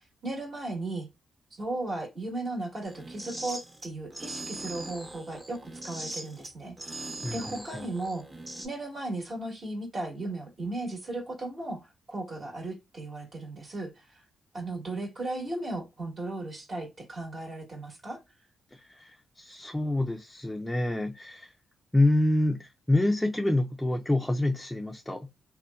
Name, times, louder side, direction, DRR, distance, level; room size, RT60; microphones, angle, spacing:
voice 1, 0.2-1.1 1.5-6.8 7.3-8.2 8.6-14.2 14.5-18.2, right 2 dB, 50° right, 1.1 m, -36 dB
sound 1, 2.8-8.7, right 2 dB, 30° right, 0.8 m, -40 dB
voice 2, 7.2-7.9 18.7-21.5 21.9-25.3, left 1 dB, 10° left, 0.3 m, -27 dB
2.7 x 2.1 x 2.3 m
supercardioid pair, 60°, 0 cm